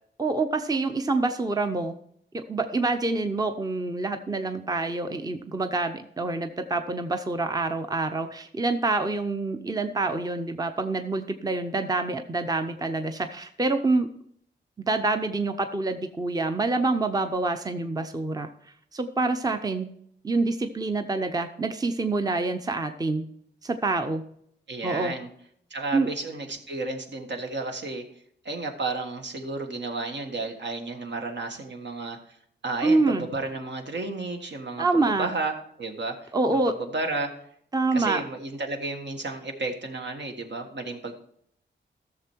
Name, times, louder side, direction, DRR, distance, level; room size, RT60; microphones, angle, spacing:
voice 1, 0.2-2.0 2.3-14.1 14.8-18.5 18.9-19.9 20.2-23.3 23.6-24.2 24.8-25.2 25.9-26.1 32.8-33.3 34.8-35.3 36.3-36.7 37.7-38.2, right 3 dB, 20° right, 7 dB, 0.7 m, -26 dB
voice 2, 24.7-25.3 25.7-28.0 28.5-32.2 32.6-37.3 37.9-41.1, right 3 dB, 65° right, 4 dB, 1.6 m, -32 dB
14.0 x 6.9 x 4.5 m, 0.67 s
wide cardioid pair, 100°, 19 cm